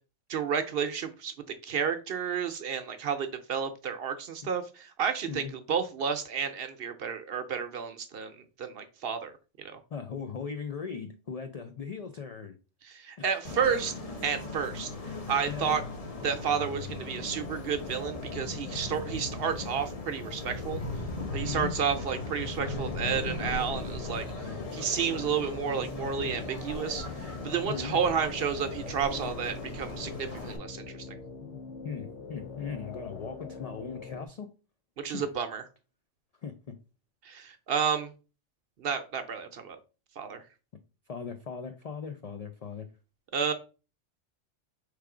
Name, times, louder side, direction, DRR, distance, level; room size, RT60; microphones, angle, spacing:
voice 1, 0.3-1.3 1.6-8.3 8.6-9.3 9.6-9.8 12.8-13.9 14.2-15.8 16.2-20.8 21.3-24.5 24.7-31.0 35.0-35.6 37.2-38.1 38.8-39.8 40.2-40.4 43.3-43.5, right 7 dB, 60° right, 0.8 m, -31 dB
voice 2, 9.9-12.5 15.5-15.8 21.4-21.7 24.4-24.7 27.7-28.0 31.8-34.5 35.1-35.3 36.4-36.7 41.1-42.9, left 6 dB, 65° left, 0.4 m, -38 dB
sound 1, 13.4-30.6, left 2 dB, 35° left, 0.9 m, -38 dB
sound 2, 22.8-34.3, left 5 dB, 80° left, 0.9 m, -43 dB
3.4 x 3.2 x 4.8 m
omnidirectional pair, 1.2 m